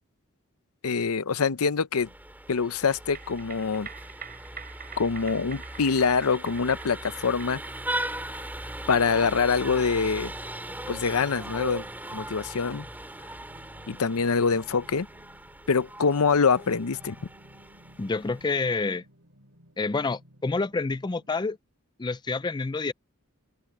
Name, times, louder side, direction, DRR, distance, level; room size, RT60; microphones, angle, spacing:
voice 1, 0.8-2.1 2.5-3.9 5.0-7.6 8.9-10.3 10.9-11.8 12.1-12.9 13.9-15.1 15.7-17.1, left 5 dB, 80° left, 0.7 m, -25 dB
Vehicle horn car horn honking, 1.9-18.8, right 1 dB, 10° right, 3.3 m, -39 dB
sound 1, 2.9-15.6 15.9-16.0, right 7 dB, 40° right, 7.0 m, -48 dB
sound 2, 9.6-21.6, equal, 60° right, 2.8 m, -56 dB
voice 2, 18.0-19.0 19.8-21.6 22.0-22.9, left 3 dB, 20° left, 0.4 m, -28 dB
head